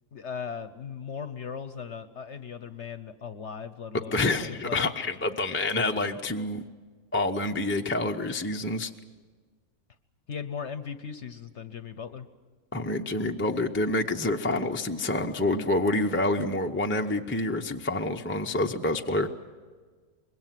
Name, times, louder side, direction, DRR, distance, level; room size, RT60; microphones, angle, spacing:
voice 1, 0.1-4.9 10.3-12.3, left 6 dB, 55° left, 11 dB, 1.0 m, -38 dB
voice 2, 3.9-6.6 7.1-8.9 12.7-19.3, left 2 dB, 15° left, 3 dB, 0.5 m, -27 dB
25.0 x 21.5 x 7.6 m, 1.5 s
omnidirectional pair, 1.6 m